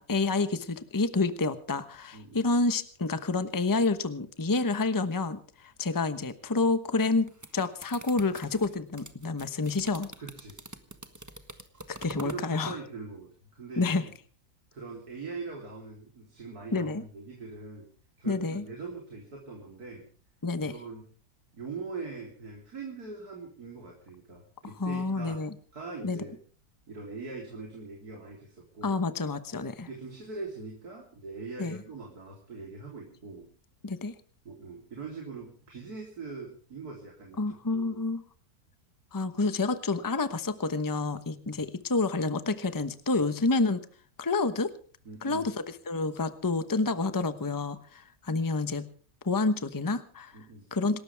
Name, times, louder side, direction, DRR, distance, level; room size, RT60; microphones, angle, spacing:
voice 1, 0.0-10.1 11.9-12.8 13.8-14.0 16.7-17.0 18.2-18.7 20.4-20.7 24.8-25.5 26.0-26.2 28.8-29.9 31.6-31.8 33.8-34.1 37.4-38.2 39.1-43.8 44.2-44.7 45.2-48.9 49.2-50.3 50.7-51.0, left 3 dB, 15° left, 11 dB, 0.9 m, -29 dB
voice 2, 2.1-2.5 10.2-10.6 11.7-11.9 12.1-14.1 14.7-17.9 18.2-20.1 20.6-21.0 21.5-25.4 25.7-26.4 26.9-29.0 29.8-33.5 34.4-37.4 37.7-38.0 41.4-41.6 43.1-43.2 45.0-45.5 50.3-50.7, right 4 dB, 80° right, 0 dB, 4.2 m, -42 dB
sound 1, 7.1-12.5, right 1 dB, 15° right, 1.2 m, -46 dB
27.0 x 13.0 x 3.5 m, 0.41 s
omnidirectional pair, 1.6 m